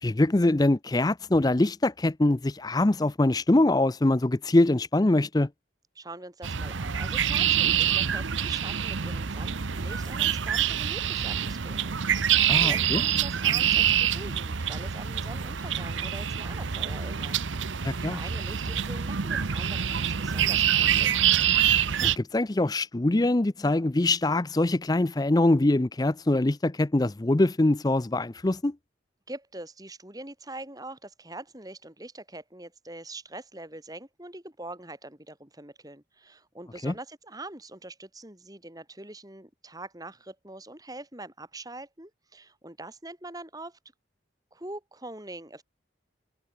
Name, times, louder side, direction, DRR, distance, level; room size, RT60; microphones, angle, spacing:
voice 1, 0.0-5.5 12.5-13.0 17.8-18.2 22.0-28.7 36.8-36.9, left 2 dB, 20° left, 0.5 m, -23 dB
voice 2, 6.0-17.4 17.6-21.3 29.3-43.8 44.5-45.6, right 2 dB, 20° right, 3.7 m, -43 dB
sound 1, 6.4-22.2, right 9 dB, 85° right, 0.9 m, -26 dB
head